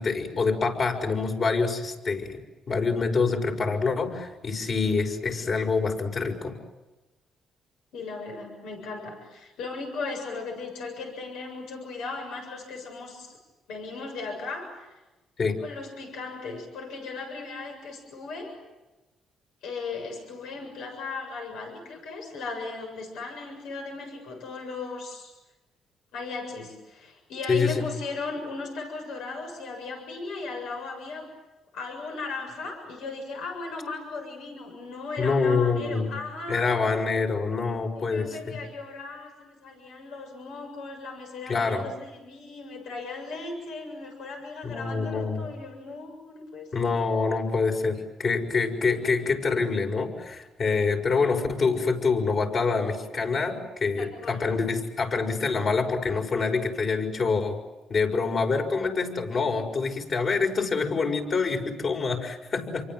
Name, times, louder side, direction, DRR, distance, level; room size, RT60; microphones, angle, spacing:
voice 1, 0.0-2.4 2.7-6.6 15.4-15.6 27.5-27.9 35.2-36.1 36.5-38.6 41.5-41.9 44.6-45.5 46.7-57.6 57.9-62.8, left 4 dB, 50° left, 4 dB, 6.3 m, -26 dB
voice 2, 7.9-13.3 13.7-14.9 15.6-18.5 19.6-25.3 26.1-31.3 31.7-36.7 38.0-46.9 54.0-54.4, left 3 dB, 85° left, 3 dB, 7.3 m, -37 dB
29.5 x 24.0 x 7.8 m, 1.1 s
cardioid pair, 90°, 0 cm